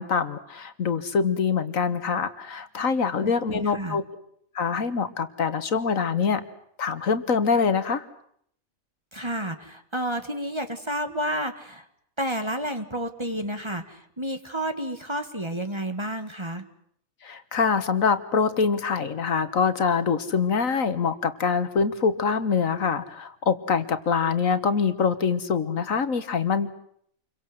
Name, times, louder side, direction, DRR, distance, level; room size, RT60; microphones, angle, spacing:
voice 1, 0.0-4.0 4.6-6.4 6.8-8.1 17.2-26.7, left 5 dB, 70° left, 12 dB, 1.8 m, -24 dB
voice 2, 3.2-4.0 9.1-11.9 12.2-16.6, equal, 20° right, 8 dB, 1.6 m, -31 dB
28.0 x 23.5 x 7.8 m, 0.67 s
omnidirectional pair, 1.5 m